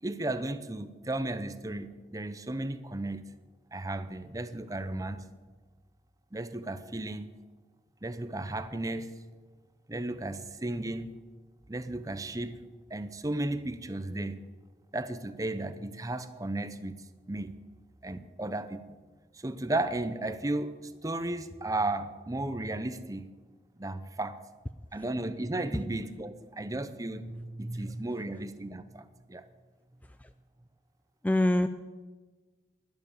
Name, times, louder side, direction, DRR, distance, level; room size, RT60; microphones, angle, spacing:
voice 1, 0.0-3.2 3.7-5.2 6.3-7.3 8.0-9.1 9.9-11.1 11.7-12.6 12.9-14.4 14.9-17.0 17.3-17.5 18.0-18.8 19.3-23.3 23.8-24.4 24.9-29.4, right 2 dB, 20° right, 12 dB, 0.7 m, -34 dB
voice 2, 31.2-31.7, left 1 dB, 10° left, 9 dB, 0.3 m, -25 dB
12.0 x 11.5 x 6.9 m, 1.4 s
head